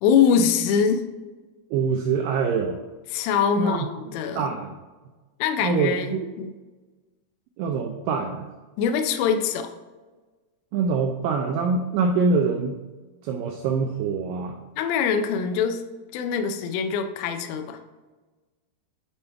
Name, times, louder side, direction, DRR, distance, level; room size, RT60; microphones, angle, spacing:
voice 1, 0.0-1.1 3.1-4.5 5.4-6.5 8.8-9.7 14.8-15.8 16.1-17.8, left 7 dB, 80° left, 7 dB, 2.4 m, -23 dB
voice 2, 1.7-2.8 3.6-3.9 4.4-4.7 5.6-6.2 7.6-8.5 10.7-12.8 13.2-14.6, right 5 dB, 85° right, 3 dB, 2.0 m, -24 dB
7.1 x 5.3 x 3.4 m, 1.3 s
omnidirectional pair, 4.4 m